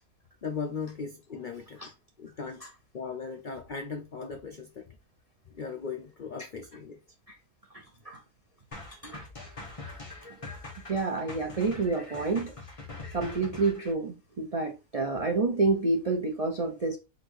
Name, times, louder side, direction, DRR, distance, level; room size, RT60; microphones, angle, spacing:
voice 1, 0.4-1.9 2.2-2.7 2.9-5.0 5.4-7.0, left 5 dB, 75° left, 0.4 m, -38 dB
voice 2, 7.7-8.2 8.9-9.2 10.9-12.5 13.1-17.0, right 3 dB, 70° right, 0.3 m, -29 dB
sound 1, 8.7-13.9, left 3 dB, 25° left, 0.9 m, -43 dB
4.1 x 2.7 x 4.6 m
omnidirectional pair, 1.7 m